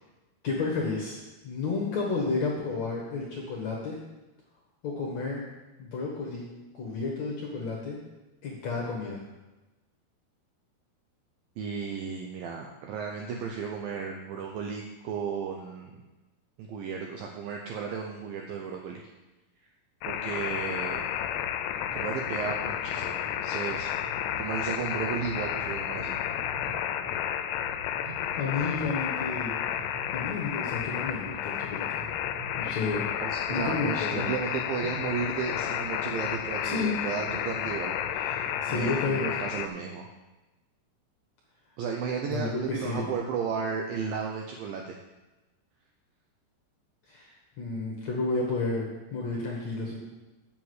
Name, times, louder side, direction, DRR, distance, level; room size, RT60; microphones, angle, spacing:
voice 1, 0.4-1.2 1.4-4.0 4.8-5.4 5.8-6.5 6.7-8.0 8.4-9.2 28.0-29.5 30.1-32.0 32.6-33.1 33.5-34.3 36.6-37.0 38.6-39.2 42.3-43.0 47.1-50.0, left 4 dB, 60° left, -3 dB, 2.0 m, -31 dB
voice 2, 11.6-16.0 16.6-19.0 20.0-21.0 21.9-23.9 24.4-26.2 33.2-40.1 41.8-45.0, right 6 dB, 75° right, 1 dB, 2.1 m, -34 dB
sound 1, 20.0-39.7, left 10 dB, 80° left, 2.6 m, -32 dB
sound 2, 21.4-27.2 27.5-29.3 29.7-30.3 30.7-34.3 34.5-35.7 36.2-36.4 36.7-36.9 37.2-37.4 37.8-38.6, right 2 dB, 55° right, 2.1 m, -45 dB
7.6 x 7.1 x 8.0 m, 1.1 s
omnidirectional pair, 4.9 m